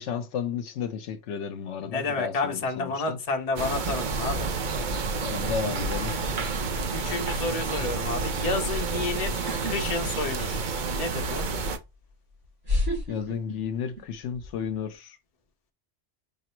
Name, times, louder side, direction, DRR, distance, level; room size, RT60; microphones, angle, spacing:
voice 1, 0.0-3.2 5.2-6.1 13.1-15.2, left 7 dB, 80° left, 1.0 m, -33 dB
voice 2, 1.8-4.5 6.9-10.6 10.9-11.5, left 3 dB, 35° left, 0.8 m, -30 dB
sound 1, 3.6-11.8, right 4 dB, 55° right, 0.6 m, -29 dB
sound 2, 9.5-9.8 10.1-10.8 11.8-11.9 12.6-14.0 14.3-14.7, left 2 dB, 85° right, 3.3 m, -29 dB
5.4 x 2.0 x 4.4 m
omnidirectional pair, 1.2 m